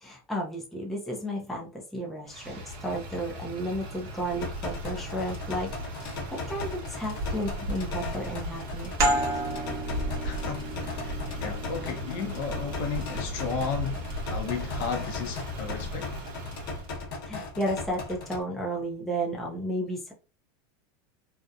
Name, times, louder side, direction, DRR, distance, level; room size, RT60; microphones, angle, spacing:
voice 1, 0.0-5.7 6.0-9.1 17.3-20.1, right 1 dB, ahead, 0.4 m, -33 dB
Motor vehicle (road), 2.3-16.9, equal, 55° right, 0.9 m, -37 dB
sound 1, 4.4-18.4, left 3 dB, 75° left, 0.9 m, -38 dB
sound 2, 9.0-14.3, right 1 dB, 30° right, 0.8 m, -33 dB
voice 2, 10.2-14.0 14.3-16.1, left 6 dB, 50° left, 0.6 m, -34 dB
2.7 x 2.0 x 2.3 m
supercardioid pair, 150°, 12 cm